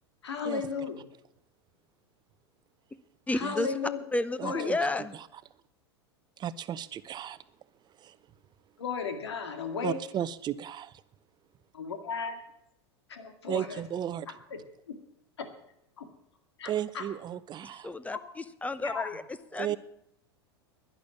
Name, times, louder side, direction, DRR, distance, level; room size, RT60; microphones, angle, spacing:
voice 1, 0.2-1.0 3.3-4.0 4.4-5.0 8.8-10.0 11.7-12.4 13.1-13.8 14.5-14.6 15.4-15.5 16.0-16.1 16.6-17.0 18.1-18.2 18.8-19.2, left 5 dB, 80° left, 7 dB, 2.1 m, -35 dB
voice 2, 3.3-3.7 4.1-5.1 17.8-19.2 19.5-19.8, left 2 dB, 10° left, 15 dB, 0.8 m, -31 dB
voice 3, 4.4-4.8 6.4-7.4 8.0-8.2 9.8-10.9 13.5-14.3 16.6-17.9 19.6-19.8, right 10 dB, 30° right, 16 dB, 0.8 m, -34 dB
11.5 x 11.0 x 7.1 m, 0.76 s
hypercardioid pair, 90°, 14 cm